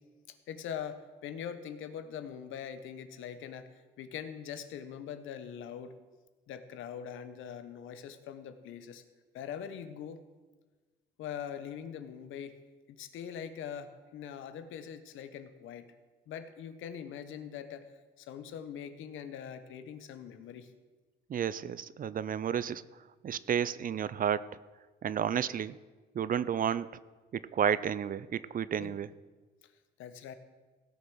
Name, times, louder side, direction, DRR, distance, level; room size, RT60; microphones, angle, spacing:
voice 1, 0.3-5.9 6.5-9.0 9.3-10.2 11.2-12.6 12.9-15.9 16.3-17.9 18.2-20.7 28.8-29.0 30.0-30.3, left 8 dB, 85° left, 10 dB, 1.1 m, -42 dB
voice 2, 21.3-22.8 23.2-24.6 25.0-25.8 26.1-26.9 27.3-29.1, right 8 dB, 45° right, 18 dB, 0.5 m, -31 dB
16.5 x 6.7 x 6.2 m, 1.3 s
cardioid pair, 90°, 20 cm